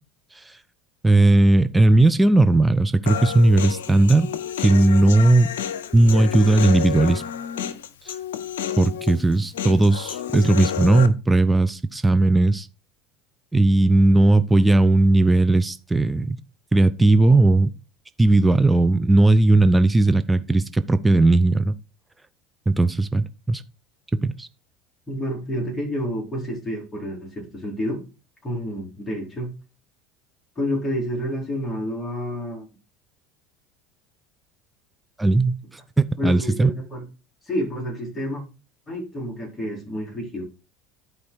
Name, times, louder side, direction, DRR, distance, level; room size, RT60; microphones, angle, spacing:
voice 1, 1.0-4.3 4.6-5.5 5.9-7.2 8.8-12.7 13.5-16.4 16.7-17.7 18.2-21.7 22.7-23.6 24.2-24.5 35.2-36.7, right 2 dB, 10° right, 0.7 m, -17 dB
Human voice, 3.1-11.1, left 9 dB, 80° left, 0.7 m, -30 dB
voice 2, 25.1-28.0 28.4-29.5 30.6-32.7 36.2-37.0 37.5-38.4 38.9-40.5, equal, 20° left, 4.1 m, -29 dB
11.5 x 4.8 x 4.6 m
hypercardioid pair, 80°, 0 cm